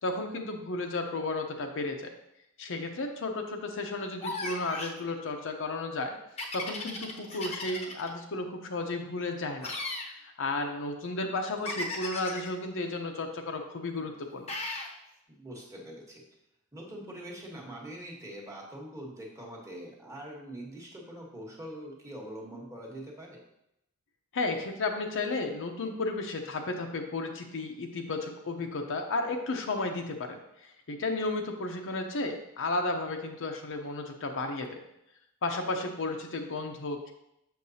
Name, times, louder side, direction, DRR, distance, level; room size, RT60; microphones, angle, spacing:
voice 1, 0.0-2.1 2.6-6.1 6.5-9.7 10.1-14.5 24.3-34.8 35.4-37.1, left 2 dB, 60° left, 4 dB, 0.7 m, -33 dB
sound 1, 4.2-5.0 6.4-8.1 9.6-10.1 11.6-12.5 14.5-14.9, left 2 dB, 30° left, 0.8 m, -36 dB
voice 2, 15.3-16.2 16.7-23.4, right 1 dB, 15° right, -2 dB, 1.2 m, -43 dB
6.6 x 6.5 x 2.7 m, 0.83 s
head